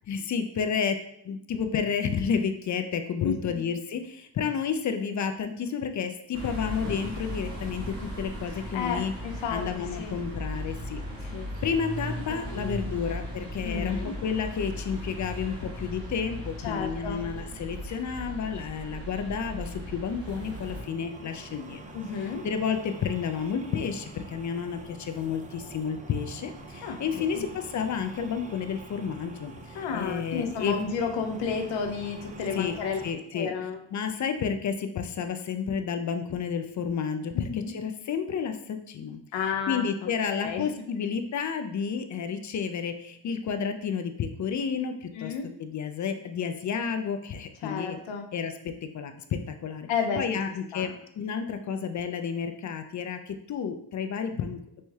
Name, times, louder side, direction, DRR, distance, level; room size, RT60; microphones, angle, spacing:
voice 1, 0.1-1.0 1.2-9.1 9.5-11.3 11.6-21.8 22.4-30.8 32.5-32.7 33.0-33.5 33.9-39.2 39.7-44.9 45.2-45.3 45.6-48.0 48.3-49.9 50.2-54.8, left 6 dB, 40° left, 7 dB, 0.5 m, -31 dB
voice 2, 3.2-3.6 8.7-10.2 11.3-11.5 12.1-13.0 13.6-14.1 16.6-17.2 21.9-22.5 26.8-27.4 29.7-33.0 33.3-33.8 37.3-37.7 39.3-39.9 40.3-40.7 45.1-45.5 47.6-48.3 49.9-50.2 50.7-50.9, left 6 dB, 80° left, 4 dB, 0.7 m, -32 dB
sound 1, 6.3-20.8, equal, 75° right, 1.5 m, -37 dB
sound 2, 20.3-33.1, right 2 dB, 20° right, 0.4 m, -45 dB
4.1 x 3.0 x 2.3 m, 0.71 s
supercardioid pair, 60°, 45 cm